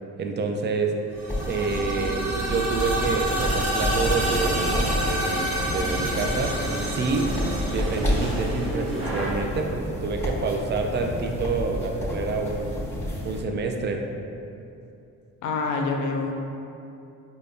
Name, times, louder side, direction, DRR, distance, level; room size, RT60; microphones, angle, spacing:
voice 1, 0.2-0.9 1.5-6.6 6.9-7.3 7.7-12.7 13.2-14.0, right 4 dB, 35° right, 3 dB, 0.4 m, -28 dB
sound 1, 1.1-8.9, right 1 dB, 55° right, 0.9 m, -29 dB
sound 2, 1.3-13.4, left 1 dB, 10° left, 1.3 m, -31 dB
sound 3, 3.8-9.3, right 1 dB, 20° right, 0.9 m, -32 dB
voice 2, 15.4-16.5, left 3 dB, 80° left, 2 dB, 0.5 m, -26 dB
5.0 x 2.3 x 2.6 m, 2.7 s
cardioid pair, 90°, 30 cm